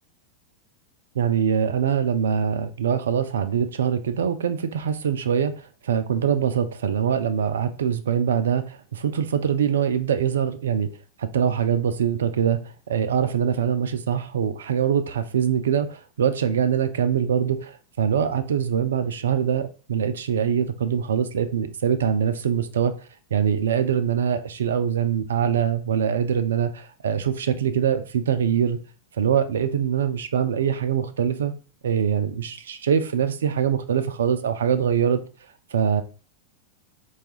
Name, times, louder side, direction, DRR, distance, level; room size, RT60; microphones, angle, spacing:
voice 1, 1.2-10.9 11.2-22.9 23.3-28.8 29.2-31.5 31.8-35.2 35.7-36.0, right 8 dB, 65° right, 0.3 m, -23 dB
4.5 x 2.3 x 2.8 m
figure-of-eight pair, 90°, 0 cm